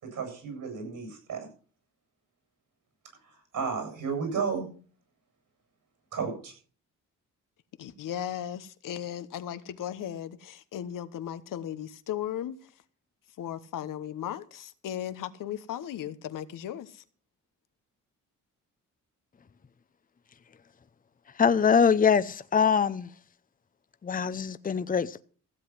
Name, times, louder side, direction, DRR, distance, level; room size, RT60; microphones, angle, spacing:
voice 1, 0.0-1.5 3.2-4.7 6.1-6.5, right 5 dB, 75° right, 7.8 m, -33 dB
voice 2, 7.8-12.6 13.4-17.0, left 10 dB, 80° left, 1.1 m, -36 dB
voice 3, 21.4-23.1 24.0-25.2, left 6 dB, 25° left, 0.7 m, -23 dB
15.5 x 7.8 x 6.2 m
cardioid pair, 75°, 32 cm